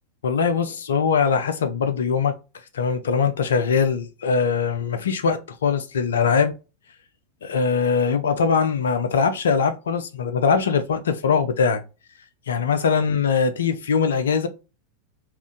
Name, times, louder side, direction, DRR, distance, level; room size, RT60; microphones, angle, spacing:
voice 1, 0.2-2.3 2.7-6.5 7.4-11.8 12.5-14.5, left 5 dB, 65° left, 0.6 m, -21 dB
3.6 x 2.6 x 3.6 m
figure-of-eight pair, 90°, 0 cm